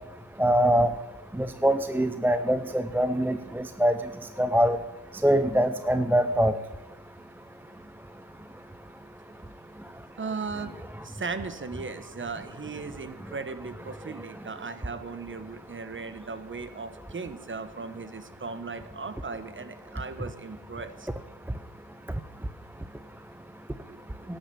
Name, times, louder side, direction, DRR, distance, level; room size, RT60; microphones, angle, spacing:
voice 1, 0.4-0.9 1.4-3.9 4.4-4.8 5.2-6.5, equal, 5° right, 10 dB, 0.5 m, -23 dB
voice 2, 10.2-10.7 11.0-21.1 23.8-24.0, right 4 dB, 25° right, 12 dB, 1.2 m, -37 dB
11.5 x 9.0 x 6.9 m, 0.99 s
supercardioid pair, 70°, 48 cm